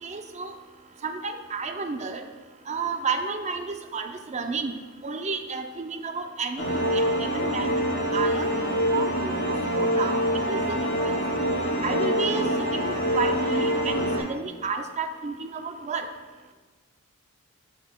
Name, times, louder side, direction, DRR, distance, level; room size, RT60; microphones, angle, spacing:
voice 1, 0.0-0.5 1.0-2.2 2.7-4.7 5.0-7.8 8.1-8.6 8.9-10.2 10.5-11.2 11.8-16.1, right 4 dB, 30° right, 7 dB, 0.5 m, -31 dB
sound 1, 6.6-14.2, equal, 55° left, 1.9 m, -25 dB
11.5 x 6.4 x 2.2 m, 1.4 s
head